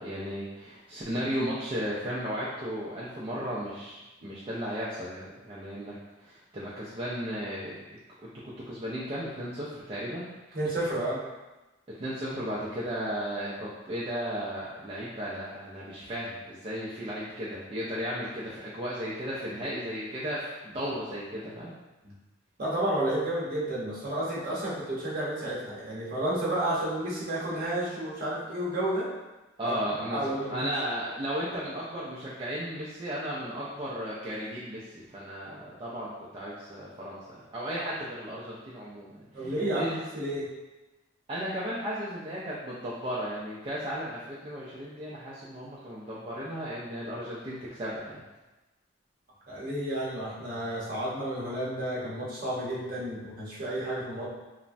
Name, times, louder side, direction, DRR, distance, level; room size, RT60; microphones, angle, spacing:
voice 1, 0.0-5.9 6.2-7.7 8.4-10.3 12.0-21.7 29.6-40.0 41.3-48.2, equal, 30° right, -8 dB, 0.3 m, -35 dB
voice 2, 10.5-11.2 22.0-22.1 22.6-29.1 29.6-29.7 30.1-30.5 39.3-40.5 49.5-54.3, right 1 dB, 50° right, -7 dB, 0.8 m, -31 dB
3.1 x 2.0 x 2.5 m, 1.1 s
head